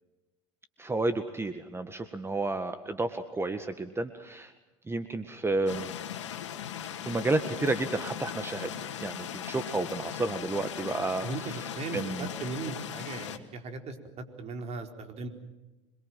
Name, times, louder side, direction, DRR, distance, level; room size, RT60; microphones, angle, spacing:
voice 1, 0.8-4.5 4.9-5.9 7.0-11.3 11.9-12.3, right 2 dB, 15° right, 10 dB, 1.8 m, -31 dB
sound 1, 5.7-13.4, left 9 dB, 85° left, 2.0 m, -39 dB
voice 2, 11.2-15.3, right 3 dB, 45° right, 6 dB, 4.4 m, -38 dB
27.0 x 22.5 x 7.5 m, 1.1 s
hypercardioid pair, 80°, 15 cm